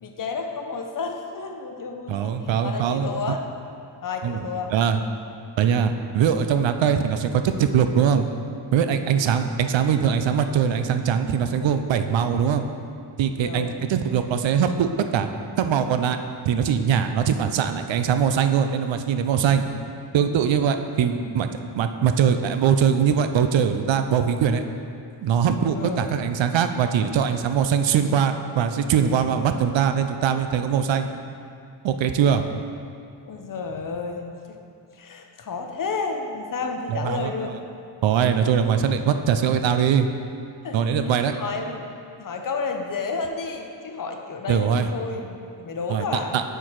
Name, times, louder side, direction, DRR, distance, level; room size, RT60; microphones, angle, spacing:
voice 1, 0.0-2.4 2.6-3.4 4.0-4.7 9.0-9.3 13.4-13.8 25.7-26.2 33.2-34.6 34.9-37.5 40.6-41.9 42.2-46.4, left 4 dB, 45° left, 4 dB, 0.7 m, -31 dB
voice 2, 2.1-3.4 4.2-4.4 4.7-5.0 5.6-8.3 8.7-12.6 13.2-15.3 15.6-16.2 16.4-19.6 20.1-24.6 25.2-31.1 31.8-32.5 36.9-37.3 38.0-40.1 40.7-41.4 44.5-44.9 45.9-46.1 46.3-46.4, right 7 dB, 80° right, 8 dB, 0.5 m, -22 dB
8.4 x 4.6 x 4.6 m, 2.4 s
wide cardioid pair, 145°, 45 cm